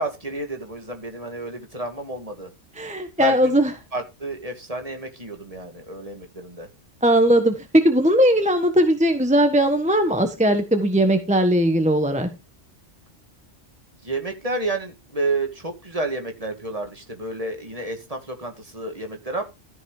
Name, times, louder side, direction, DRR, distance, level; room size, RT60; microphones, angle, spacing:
voice 1, 0.0-2.5 3.2-3.6 3.9-6.7 14.0-19.4, right 2 dB, 30° right, 2.1 m, -30 dB
voice 2, 2.8-3.7 7.0-12.3, right 1 dB, 5° right, 1.2 m, -19 dB
14.0 x 5.6 x 4.9 m
omnidirectional pair, 1.3 m